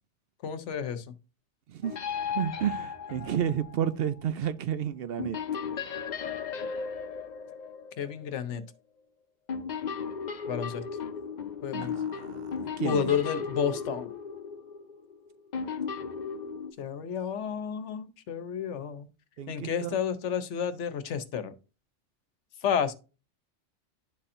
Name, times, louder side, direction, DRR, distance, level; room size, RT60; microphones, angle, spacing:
voice 1, 0.4-1.1 8.0-8.6 10.5-10.8 11.6-11.9 12.8-14.1 16.8-19.1 19.5-21.5 22.6-22.9, left 7 dB, 80° left, 1.1 m, -31 dB
sound 1, 1.8-3.9 5.2-8.4 9.5-16.7, left 6 dB, 45° left, 0.7 m, -36 dB
voice 2, 2.3-5.4 11.7-13.2 19.4-20.0, right 9 dB, 65° right, 0.7 m, -31 dB
11.0 x 4.2 x 2.5 m
omnidirectional pair, 1.2 m